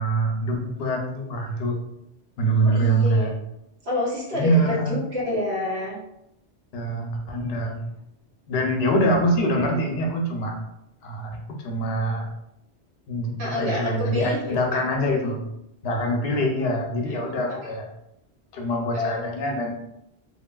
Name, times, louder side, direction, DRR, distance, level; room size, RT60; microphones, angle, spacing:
voice 1, 0.0-1.8 2.4-3.3 4.3-5.0 6.7-7.8 8.5-10.6 11.0-12.3 13.1-15.5 15.8-17.9 18.5-19.7, right 1 dB, 70° left, 2 dB, 0.8 m, -24 dB
voice 2, 2.6-3.3 3.8-6.0 13.4-14.9 17.1-17.7 18.9-19.3, left 1 dB, 70° right, -5 dB, 1.2 m, -28 dB
3.0 x 2.4 x 2.2 m, 0.80 s
omnidirectional pair, 1.1 m